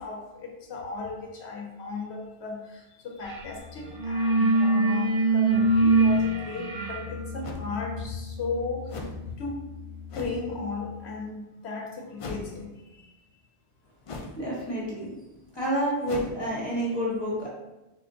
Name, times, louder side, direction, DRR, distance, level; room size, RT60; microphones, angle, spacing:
voice 1, 0.0-8.9 9.4-9.5 10.1-12.7, left 4 dB, 85° left, 1 dB, 0.9 m, -35 dB
sound 1, 3.3-3.5 3.8-10.4, right 2 dB, 45° right, 0.6 m, -25 dB
sound 2, 6.4-6.5 7.4-7.7 8.9-9.2 10.1-10.4 12.2-12.6 14.1-14.4 16.1-16.3, left 3 dB, 55° left, 0.3 m, -37 dB
voice 2, 14.4-15.1 15.5-17.5, equal, 25° left, -5 dB, 1.5 m, -29 dB
4.2 x 3.7 x 2.7 m, 1.0 s
omnidirectional pair, 1.1 m